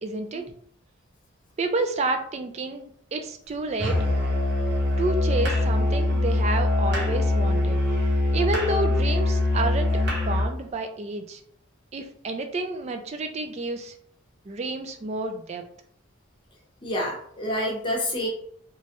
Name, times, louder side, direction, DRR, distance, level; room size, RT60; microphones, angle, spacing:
voice 1, 0.0-0.5 1.6-4.0 5.0-7.8 8.3-9.9 10.3-11.4 11.9-13.9 14.5-15.7, right 2 dB, 30° right, 6 dB, 0.3 m, -29 dB
Musical instrument, 3.8-10.5, left 2 dB, 55° right, 0.9 m, -23 dB
voice 2, 16.8-18.3, equal, 25° left, -2 dB, 0.8 m, -28 dB
3.0 x 2.3 x 2.9 m, 0.64 s
head